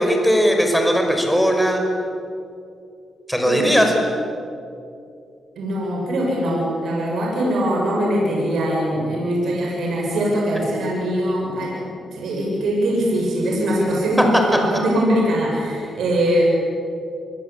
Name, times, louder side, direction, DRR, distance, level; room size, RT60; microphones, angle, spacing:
voice 1, 0.0-1.8 3.3-3.9, equal, ahead, 3 dB, 5.6 m, -18 dB
voice 2, 5.6-11.7 12.1-16.4, equal, 80° right, -2 dB, 7.4 m, -22 dB
27.5 x 21.5 x 8.6 m, 2.6 s
cardioid pair, 85°, 0 cm